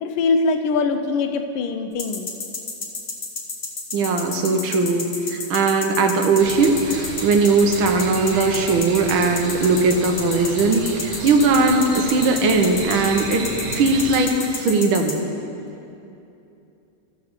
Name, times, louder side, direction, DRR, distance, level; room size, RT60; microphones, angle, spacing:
voice 1, 0.0-2.3, left 4 dB, 90° left, 7 dB, 1.6 m, -22 dB
sound 1, 2.0-15.1, left 4 dB, 45° left, 0.6 m, -30 dB
voice 2, 3.9-13.4 13.7-15.2, right 3 dB, 75° right, 4 dB, 1.6 m, -19 dB
sound 2, 6.4-14.3, right 3 dB, 60° right, 1.4 m, -33 dB
13.5 x 4.7 x 6.5 m, 2.7 s
omnidirectional pair, 2.3 m